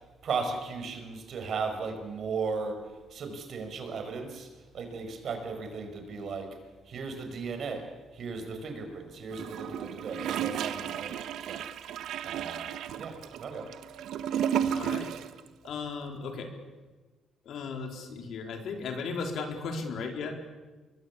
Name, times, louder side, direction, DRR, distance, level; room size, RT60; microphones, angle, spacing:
voice 1, 0.2-4.5 4.7-6.5 6.9-11.7 12.2-12.7 13.0-13.7, right 4 dB, 60° right, 6 dB, 5.6 m, -36 dB
Gurgling / Toilet flush, 9.3-15.4 15.6-15.7, right 9 dB, 80° right, 1.3 m, -33 dB
voice 2, 14.7-15.1 15.6-16.5 17.4-20.4, left 4 dB, 70° left, 4 dB, 4.2 m, -36 dB
25.0 x 22.0 x 8.5 m, 1.3 s
cardioid pair, 90°, 0 cm